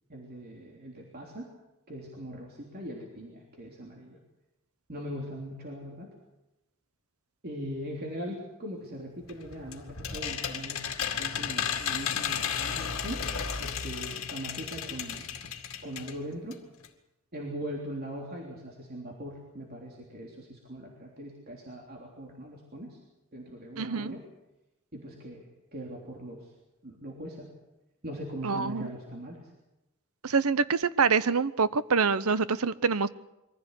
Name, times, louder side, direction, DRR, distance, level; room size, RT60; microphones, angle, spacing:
voice 1, 0.1-1.5 1.9-4.2 4.9-6.1 7.4-10.9 11.2-13.2 13.6-15.3 15.8-16.6 17.3-23.0 23.3-24.2 24.9-26.5 26.8-27.5 28.0-29.4, equal, 45° right, -1 dB, 3.4 m, -40 dB
sound 1, 9.3-16.2 16.5-16.6 16.8-16.9, left 7 dB, 65° left, 2.1 m, -34 dB
voice 2, 23.8-24.1 28.4-28.9 30.2-33.1, right 5 dB, 75° right, 16 dB, 0.8 m, -26 dB
23.5 x 15.5 x 8.3 m, 0.96 s
head